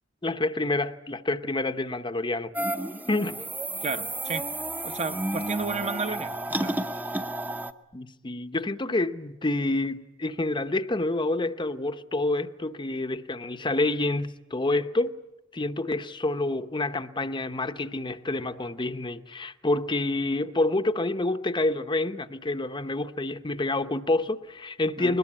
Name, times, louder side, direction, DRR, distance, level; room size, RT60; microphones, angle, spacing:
voice 1, 0.2-2.5 3.1-3.4 7.9-15.1 15.5-25.2, left 2 dB, 25° left, 0.8 m, -28 dB
sound 1, 2.5-7.7, right 1 dB, 10° right, 0.8 m, -32 dB
voice 2, 3.8-4.5 4.8-6.8 25.0-25.2, right 4 dB, 35° right, 1.0 m, -32 dB
22.0 x 20.5 x 9.9 m
head